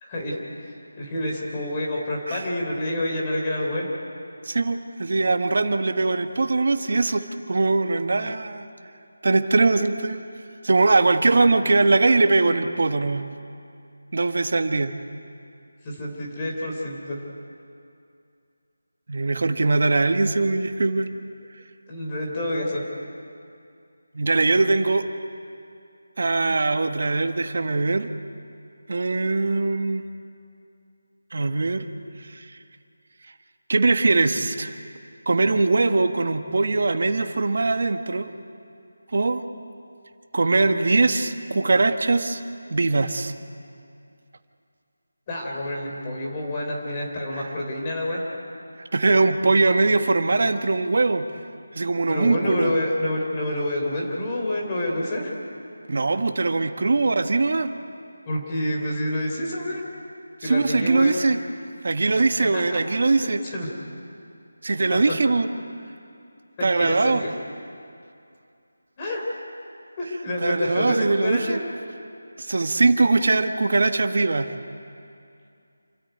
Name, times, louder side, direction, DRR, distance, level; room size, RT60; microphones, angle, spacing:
voice 1, 0.0-3.9 15.8-17.2 21.9-22.8 45.3-48.2 52.1-55.4 58.3-59.8 60.4-61.1 62.5-62.8 63.2-63.7 66.8-67.3 69.0-69.2 70.0-71.6, left 1 dB, 20° left, -2 dB, 3.8 m, -28 dB
voice 2, 4.5-8.6 9.2-10.2 10.6-13.3 14.1-14.9 19.1-21.1 24.1-25.0 26.2-28.1 28.9-30.0 31.3-31.8 32.3-32.5 33.7-34.8 35.2-38.3 39.1-39.4 40.3-42.4 42.7-43.3 47.4-47.5 48.9-51.3 51.7-52.7 55.9-57.7 60.4-61.4 61.8-63.4 64.6-65.5 66.6-67.2 70.4-71.6 72.4-74.5, right 3 dB, 55° right, 8 dB, 1.5 m, -21 dB
27.5 x 13.5 x 9.4 m, 2.5 s
figure-of-eight pair, 170°, 0 cm